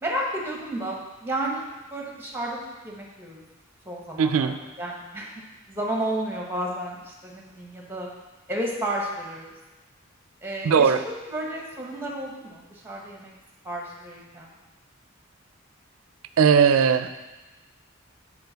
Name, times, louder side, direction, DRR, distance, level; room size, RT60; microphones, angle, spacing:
voice 1, 0.0-2.6 2.8-3.4 3.8-8.1 8.5-9.5 10.4-13.3 13.6-14.5, right 1 dB, 10° right, -1 dB, 1.0 m, -32 dB
voice 2, 4.2-4.6 10.6-11.0 16.4-17.1, right 6 dB, 80° right, 11 dB, 0.4 m, -18 dB
6.7 x 4.9 x 4.0 m, 1.1 s
head